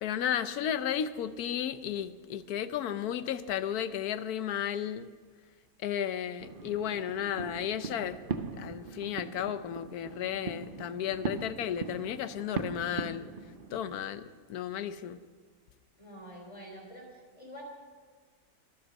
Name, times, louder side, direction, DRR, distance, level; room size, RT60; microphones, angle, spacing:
voice 1, 0.0-5.1 5.8-8.2 8.6-13.3 13.7-14.2 14.5-15.2, left 9 dB, 80° left, 13 dB, 1.2 m, -33 dB
sound 1, 6.4-14.0, right 4 dB, 45° right, 0.8 m, -40 dB
voice 2, 16.0-17.6, equal, 20° left, 0 dB, 3.8 m, -47 dB
23.5 x 8.0 x 6.4 m, 1.5 s
omnidirectional pair, 1.6 m